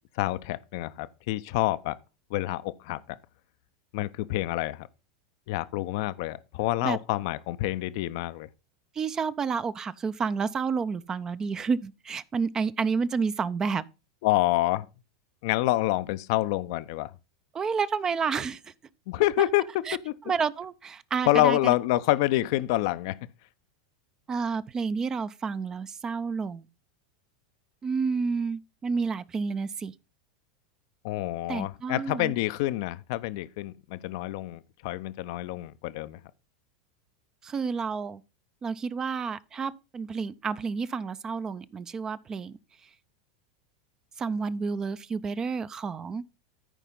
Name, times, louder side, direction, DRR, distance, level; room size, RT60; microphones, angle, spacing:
voice 1, 0.2-2.0 2.3-3.0 3.9-4.9 5.5-8.5 14.2-14.9 15.4-17.1 19.1-20.1 21.3-23.2 31.0-36.2, left 16 dB, 55° left, 0.5 m, -27 dB
voice 2, 9.0-13.8 17.5-18.7 19.9-20.0 20.3-21.7 24.3-26.6 27.8-29.9 31.5-32.3 37.4-38.2 38.6-42.6 44.2-46.2, right 5 dB, 25° right, 0.5 m, -30 dB
13.5 x 5.0 x 3.8 m
figure-of-eight pair, 90°, 3 cm